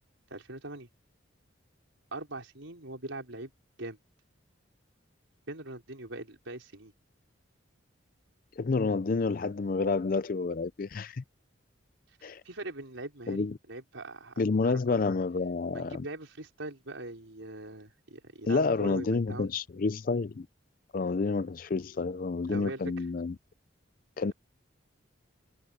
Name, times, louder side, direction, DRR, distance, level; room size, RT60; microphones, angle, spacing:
voice 1, 0.3-0.9 2.1-3.5 3.8-4.0 5.5-6.9 12.2-14.3 14.6-15.0 15.7-19.5 22.5-22.8, right 2 dB, 75° right, 4.9 m, -42 dB
voice 2, 8.6-11.2 12.2-12.4 13.3-13.5 14.4-16.1 18.5-20.5 20.9-23.4 24.2-24.3, left 4 dB, 45° left, 0.4 m, -29 dB
head